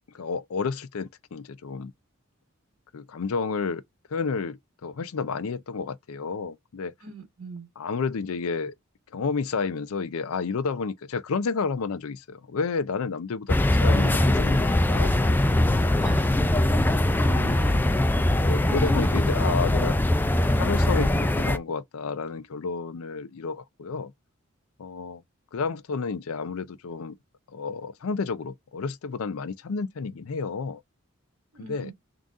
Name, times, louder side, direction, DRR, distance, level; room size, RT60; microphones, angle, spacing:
voice 1, 0.1-1.9 2.9-3.8 4.1-6.9 7.8-8.7 9.1-16.1 18.3-19.9 20.6-24.1 24.8-25.2 25.5-27.2 27.5-30.8 31.6-31.9, left 5 dB, 80° left, 0.5 m, -31 dB
voice 2, 7.0-7.7 16.0-16.3 17.2-17.9 31.5-31.9, right 3 dB, 70° right, 1.8 m, -40 dB
sound 1, 13.5-21.6, left 1 dB, 10° left, 0.3 m, -22 dB
3.8 x 2.5 x 3.6 m
head